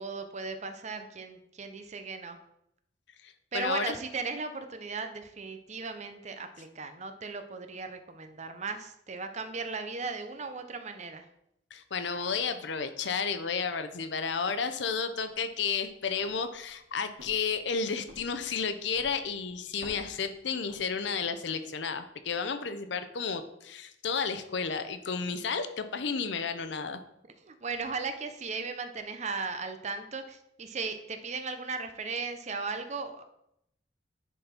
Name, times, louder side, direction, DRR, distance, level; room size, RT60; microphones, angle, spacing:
voice 1, 0.0-2.4 3.5-11.3 27.4-33.2, right 4 dB, 35° right, 8 dB, 0.7 m, -37 dB
voice 2, 3.2-3.9 11.7-27.0, left 5 dB, 65° left, 9 dB, 0.6 m, -32 dB
sound 1, 15.1-21.4, equal, 60° right, 2.1 m, -54 dB
10.0 x 4.1 x 4.3 m, 0.78 s
head